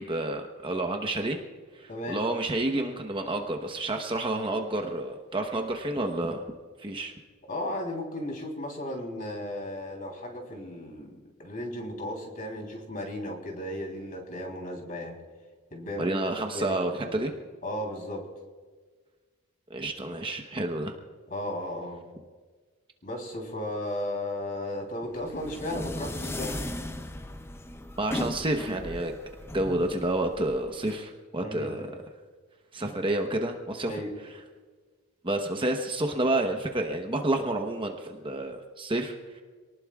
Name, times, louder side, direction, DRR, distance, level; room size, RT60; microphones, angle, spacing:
voice 1, 0.0-1.4 1.7-6.4 6.8-7.1 16.0-17.3 19.7-20.9 28.0-29.1 29.5-31.9 32.7-34.0 35.2-39.4, right 2 dB, 25° right, 3 dB, 1.0 m, -29 dB
voice 2, 1.9-2.2 7.5-15.2 15.7-16.1 16.5-17.1 17.6-18.2 21.3-22.0 23.0-26.6 31.4-31.8 33.9-34.1, left 1 dB, 40° left, 1 dB, 3.4 m, -35 dB
sound 1, 25.1-30.9, left 1 dB, 10° left, 0.5 m, -37 dB
26.5 x 19.0 x 2.4 m, 1.5 s
head